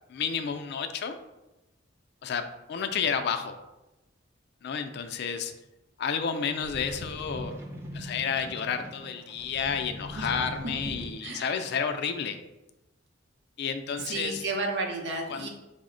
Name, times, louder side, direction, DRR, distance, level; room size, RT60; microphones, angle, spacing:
voice 1, 0.1-1.1 2.2-3.6 4.6-5.5 6.0-7.5 7.9-12.4 13.6-14.4 15.3-15.5, left 6 dB, 60° left, 7 dB, 0.3 m, -31 dB
sound 1, 6.6-11.5 12.1-12.2, equal, 15° right, 0.5 m, -41 dB
voice 2, 14.0-15.5, right 3 dB, 65° right, 2 dB, 0.7 m, -32 dB
5.0 x 2.0 x 3.7 m, 0.99 s
head